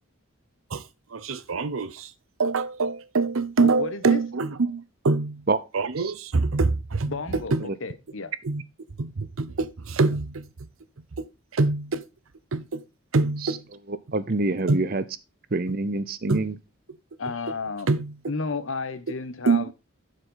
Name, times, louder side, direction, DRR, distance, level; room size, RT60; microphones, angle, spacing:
voice 1, 1.1-2.1 2.4-5.5 5.7-7.7 8.4-8.6 9.0-10.5 11.2-12.1 12.5-12.8 13.1-13.7 14.7-14.8 16.3-16.4 17.9-18.2 19.1-19.2 19.4-19.7, right 3 dB, 85° right, 0.7 m, -25 dB
voice 2, 3.6-4.2 7.0-8.3 17.2-17.9 18.3-19.7, left 4 dB, 75° left, 1.0 m, -32 dB
voice 3, 13.9-15.0 15.5-16.6, right 2 dB, 45° right, 0.7 m, -26 dB
11.5 x 5.0 x 4.0 m
head